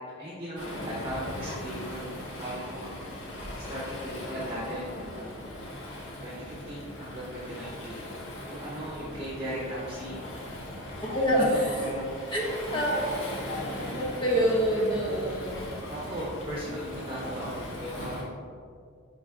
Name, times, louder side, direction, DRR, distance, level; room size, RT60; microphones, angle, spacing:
voice 1, 0.2-2.9 3.7-5.3 6.2-8.1 8.4-10.2 11.3-12.1 12.6-12.8 15.9-18.3, equal, 25° right, -6 dB, 1.0 m, -37 dB
Waves surf, 0.6-18.2, left 1 dB, 85° left, 1.3 m, -39 dB
voice 2, 11.0-11.8 12.3-13.2 13.5-15.7, equal, 25° left, -4 dB, 1.0 m, -27 dB
10.5 x 3.9 x 2.4 m, 2.2 s
head